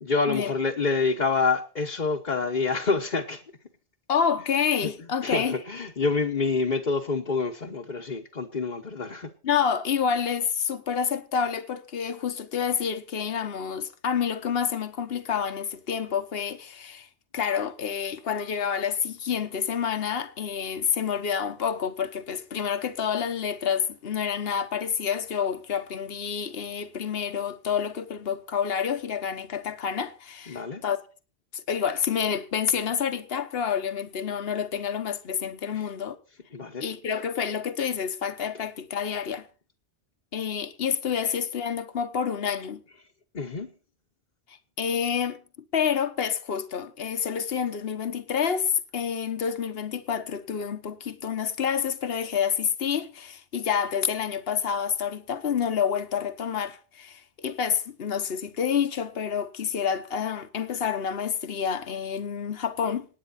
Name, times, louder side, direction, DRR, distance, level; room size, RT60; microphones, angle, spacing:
voice 1, 0.0-3.4 4.8-4.9 5.2-9.3 30.5-30.8 35.7-35.8 36.5-36.8 43.3-43.7, left 4 dB, 45° left, 1.3 m, -27 dB
voice 2, 4.1-5.5 9.4-31.0 31.5-36.2 36.8-39.5 40.3-42.8 44.5-45.4 45.7-63.1, left 7 dB, 65° left, 1.3 m, -28 dB
27.0 x 9.6 x 4.2 m
omnidirectional pair, 1.1 m